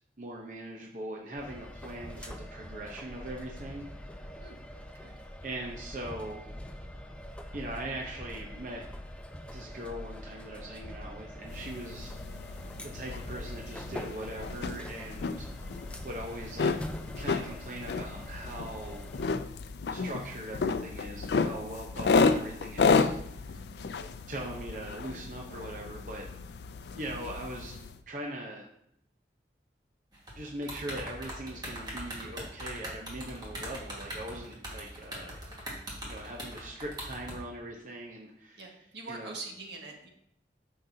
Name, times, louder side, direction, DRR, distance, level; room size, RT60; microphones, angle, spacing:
voice 1, 0.2-3.9 5.4-6.5 7.5-8.9 9.5-12.1 12.8-15.5 16.0-16.7 17.2-19.1 19.9-23.6 24.3-26.3 26.9-27.8 28.1-28.7 30.3-35.4 36.0-38.6 39.1-39.3, right 1 dB, 45° right, -1 dB, 0.8 m, -41 dB
sound 1, 1.4-19.3, equal, 5° left, 0.4 m, -44 dB
sound 2, 11.5-28.0, left 4 dB, 75° left, 0.4 m, -32 dB
voice 2, 27.0-27.3 38.6-40.1, right 3 dB, 80° right, 0 dB, 1.6 m, -44 dB
sound 3, 30.1-37.4, right 1 dB, 25° right, 1.6 m, -41 dB
9.2 x 6.6 x 2.7 m, 0.75 s
head